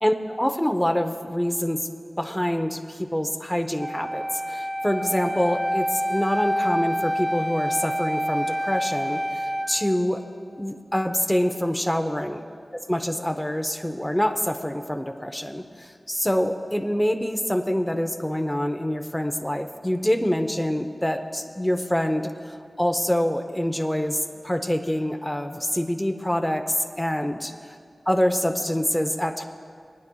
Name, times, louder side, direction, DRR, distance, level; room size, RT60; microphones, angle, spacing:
voice 1, 0.0-1.9 2.2-10.2 10.6-12.4 12.9-27.5 28.1-29.4, equal, 5° left, 5 dB, 0.6 m, -26 dB
Wind instrument woodwind instrument, 3.8-9.7, equal, 15° right, 1.1 m, -27 dB
23.0 x 9.4 x 2.3 m, 2.3 s
wide cardioid pair, 55°, 0 cm